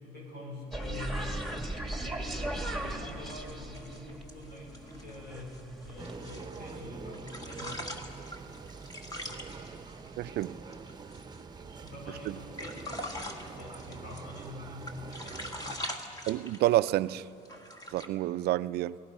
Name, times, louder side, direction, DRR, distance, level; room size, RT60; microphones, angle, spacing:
voice 1, 0.0-1.2 1.9-7.8 11.6-15.8, left 2 dB, 80° left, 7.2 m, -45 dB
sound 1, 0.7-6.2, right 1 dB, ahead, 1.9 m, -38 dB
sound 2, 3.1-6.9 7.1-11.4 11.8-11.9 12.3-14.5 14.8-17.1 17.5-18.1, left 1 dB, 20° left, 1.9 m, -43 dB
sound 3, 6.0-15.8, right 5 dB, 25° right, 0.9 m, -45 dB
voice 2, 10.2-10.6 12.3-12.4 16.3-17.2 17.9-19.0, right 15 dB, 75° right, 0.5 m, -28 dB
29.0 x 18.5 x 5.5 m
cardioid pair, 110°, 17 cm